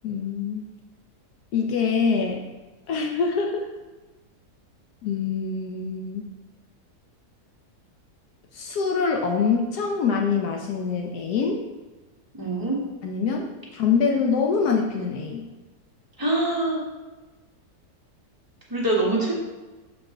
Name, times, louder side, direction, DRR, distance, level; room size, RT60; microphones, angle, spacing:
voice 1, 0.0-0.7 1.5-2.5 2.9-3.7 5.0-6.2 8.5-11.6 13.0-15.5, left 5 dB, 75° left, 1 dB, 1.2 m, -25 dB
voice 2, 12.3-12.8 16.2-16.8 18.7-19.3, right 2 dB, 15° right, -5 dB, 1.4 m, -24 dB
6.4 x 4.6 x 3.8 m, 1.2 s
omnidirectional pair, 1.8 m